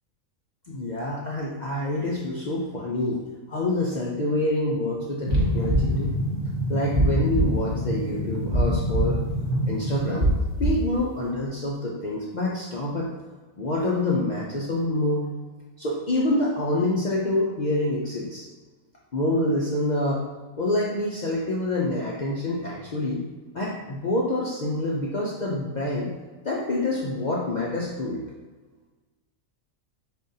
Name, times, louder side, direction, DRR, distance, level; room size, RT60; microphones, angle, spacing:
voice 1, 0.7-3.2 3.5-6.1 6.7-9.2 9.7-10.3 10.6-13.1 13.6-15.2 15.8-18.4 19.1-20.2 20.6-23.2 23.5-26.1 26.4-28.2, left 1 dB, 60° left, -4 dB, 0.4 m, -26 dB
sound 1, 5.3-10.9, equal, 30° right, 0.9 m, -24 dB
5.2 x 3.7 x 2.7 m, 1.3 s
omnidirectional pair, 1.5 m